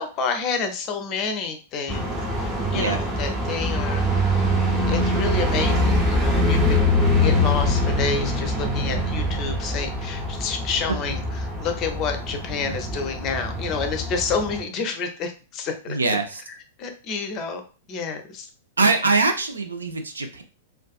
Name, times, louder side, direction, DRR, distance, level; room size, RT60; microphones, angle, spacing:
voice 1, 0.0-4.1 4.9-6.8 7.2-16.0 16.8-17.6 17.9-18.5, left 5 dB, 35° left, 6 dB, 0.5 m, -29 dB
sound 1, 1.9-14.6, left 1 dB, 20° right, 0.7 m, -23 dB
voice 2, 15.9-16.4 18.8-20.4, right 3 dB, 75° right, 6 dB, 0.4 m, -22 dB
2.4 x 2.3 x 2.3 m, 0.36 s
figure-of-eight pair, 100°, 0 cm